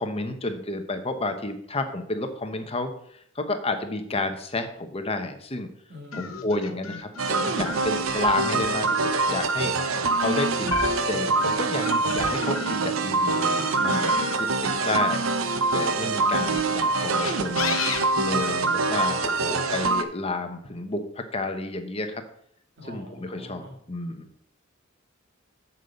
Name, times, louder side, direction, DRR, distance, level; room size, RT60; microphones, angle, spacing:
voice 1, 0.0-5.7 6.1-15.2 15.7-17.8 18.2-22.2 22.9-24.3, left 2 dB, 30° left, 6 dB, 1.0 m, -31 dB
voice 2, 5.9-6.8 22.8-23.8, equal, 55° right, 2 dB, 2.3 m, -44 dB
sound 1, 6.1-12.9 13.3-15.7 16.4-19.0, left 5 dB, 80° left, 1.0 m, -34 dB
sound 2, 7.2-20.0, right 3 dB, 80° right, 0.7 m, -25 dB
7.3 x 7.2 x 5.3 m, 0.67 s
head